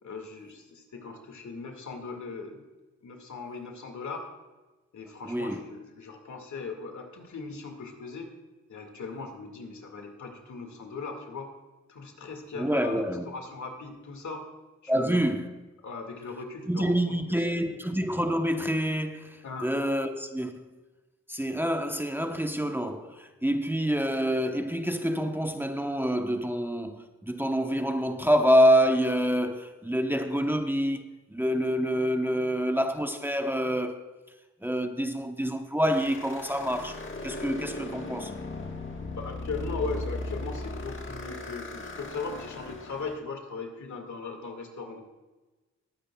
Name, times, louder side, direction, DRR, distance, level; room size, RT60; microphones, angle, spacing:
voice 1, 0.0-2.7 3.0-4.3 4.9-8.3 8.7-11.5 11.9-14.4 14.8-15.3 15.8-17.4 17.7-17.8 19.4-19.7 39.2-45.0, left 4 dB, 75° left, 2.1 m, -38 dB
voice 2, 5.2-5.6 12.6-13.2 14.9-15.6 16.7-20.7 21.3-31.0 31.3-34.0 34.6-36.9 37.2-38.3, equal, 5° right, 0.9 m, -27 dB
sound 1, 35.9-43.2, left 2 dB, 40° left, 1.5 m, -37 dB
20.0 x 9.8 x 2.3 m
cardioid pair, 60°, 30 cm